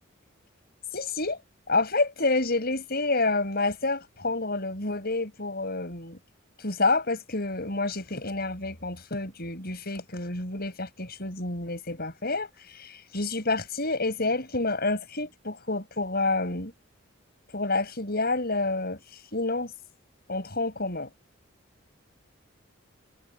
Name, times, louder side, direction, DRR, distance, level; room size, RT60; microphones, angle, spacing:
voice 1, 0.9-1.4 1.7-6.2 6.6-16.7 17.5-19.0 19.3-19.7 20.3-21.1, left 3 dB, 50° left, 7.6 m, -28 dB
head